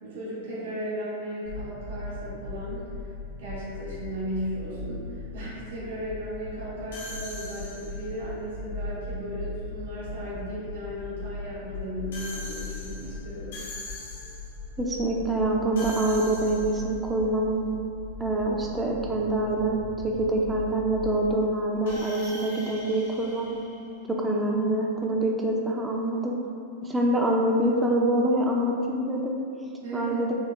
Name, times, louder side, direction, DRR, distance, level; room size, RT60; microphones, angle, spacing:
voice 1, 0.0-3.1 3.4-13.6 29.8-30.2, equal, 85° right, -10 dB, 1.3 m, -35 dB
sound 1, 1.4-21.3, left 2 dB, 65° left, 0.7 m, -39 dB
sound 2, 6.9-8.2 12.1-14.6 15.8-17.0 21.9-24.4, left 1 dB, 90° left, 1.2 m, -41 dB
voice 2, 14.8-17.6 18.2-23.5 24.2-26.4 26.8-29.4 29.9-30.3, right 1 dB, 10° right, -1 dB, 0.4 m, -25 dB
5.7 x 2.1 x 2.4 m, 2.4 s
supercardioid pair, 145°, 0 cm